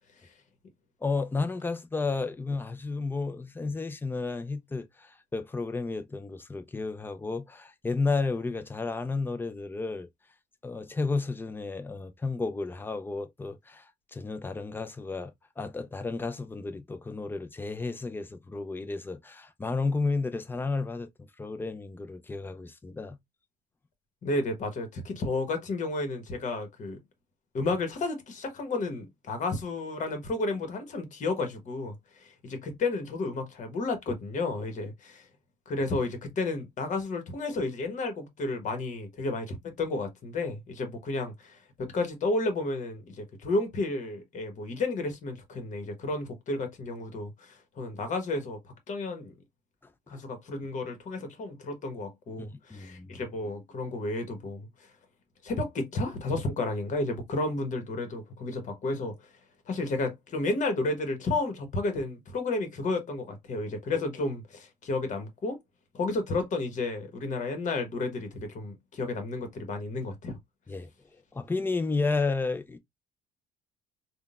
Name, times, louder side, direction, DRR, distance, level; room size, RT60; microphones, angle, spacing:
voice 1, 1.0-10.1 10.6-21.1 21.4-23.2 50.1-50.2 52.4-53.2 70.7-70.9 71.3-72.8, left 3 dB, 10° left, 0.4 m, -32 dB
voice 2, 24.2-27.0 27.5-35.3 35.7-48.6 48.9-49.3 50.1-54.9 55.4-59.2 59.7-65.6 65.9-70.4, left 2 dB, 45° left, 1.1 m, -32 dB
3.7 x 2.3 x 2.4 m
cardioid pair, 110°, 17 cm